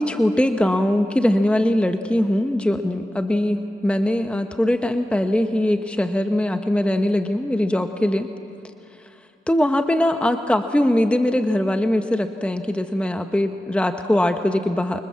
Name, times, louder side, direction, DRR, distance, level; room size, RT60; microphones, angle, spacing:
voice 1, 0.0-8.3 9.5-15.0, left 1 dB, 5° left, 7 dB, 1.1 m, -21 dB
26.5 x 25.0 x 7.5 m, 2.6 s
cardioid pair, 90°, 20 cm